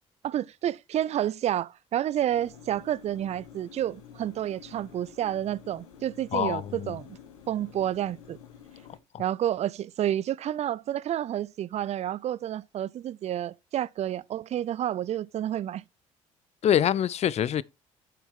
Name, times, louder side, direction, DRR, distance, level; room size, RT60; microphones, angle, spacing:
voice 1, 0.2-7.1 7.5-8.4 9.2-15.8, right 11 dB, 40° right, 0.5 m, -30 dB
sound 1, 2.3-9.0, left 8 dB, 80° left, 1.2 m, -50 dB
voice 2, 6.3-6.9 16.6-17.6, left 10 dB, 40° left, 0.5 m, -25 dB
8.4 x 7.2 x 3.7 m
figure-of-eight pair, 50°, 17 cm